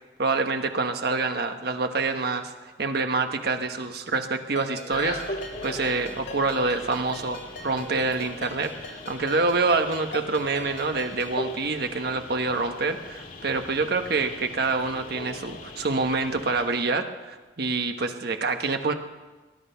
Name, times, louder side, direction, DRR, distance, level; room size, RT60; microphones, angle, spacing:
voice 1, 0.2-2.5 2.8-18.9, right 3 dB, 60° right, 6 dB, 1.3 m, -26 dB
Ringtone, 4.6-11.4, left 2 dB, 75° left, 2.0 m, -41 dB
sound 1, 4.9-16.7, left 1 dB, 50° left, 2.1 m, -40 dB
20.0 x 11.5 x 5.8 m, 1.2 s
head